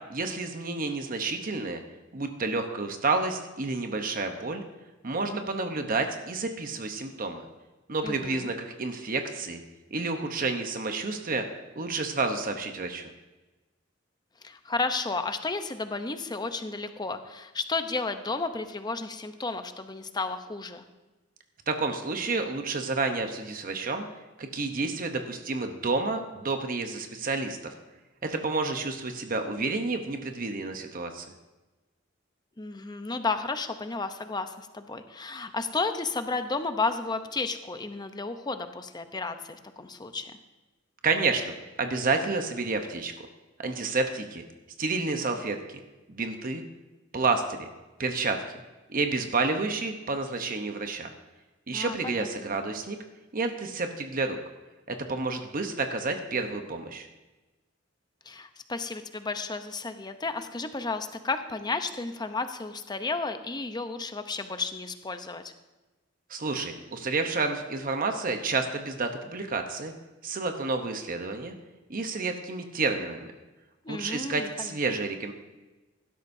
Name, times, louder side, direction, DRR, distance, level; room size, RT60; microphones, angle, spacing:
voice 1, 0.1-1.8 2.1-4.6 5.0-7.4 7.9-9.6 9.9-11.5 11.8-13.0 21.7-24.1 24.4-27.6 28.2-31.3 41.0-43.1 43.6-44.4 44.8-45.8 46.1-46.6 47.1-47.7 48.0-48.4 48.9-51.1 51.7-53.0 53.3-54.4 54.9-57.1 66.3-69.9 70.2-71.5 71.9-73.3 73.9-75.3, right 3 dB, 45° right, 6 dB, 0.9 m, -30 dB
voice 2, 8.0-8.5 14.4-20.8 32.6-40.3 51.7-52.3 58.3-65.5 73.8-74.7, left 3 dB, 20° left, 8 dB, 0.7 m, -32 dB
16.0 x 12.5 x 2.7 m, 1.1 s
head